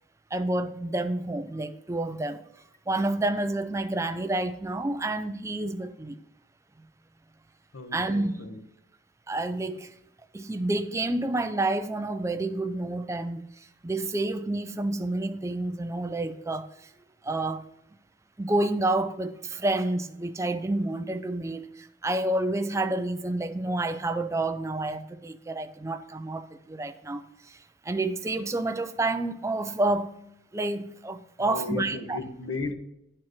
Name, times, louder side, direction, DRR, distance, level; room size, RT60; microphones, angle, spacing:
voice 1, 0.3-2.4 2.9-6.2 7.9-8.4 9.3-9.9 10.3-16.9 17.2-17.6 18.4-30.1 30.5-32.2, right 2 dB, 15° right, 0.4 m, -29 dB
voice 2, 7.7-8.6 31.4-32.7, left 4 dB, 90° left, 1.0 m, -35 dB
9.8 x 4.5 x 6.2 m
head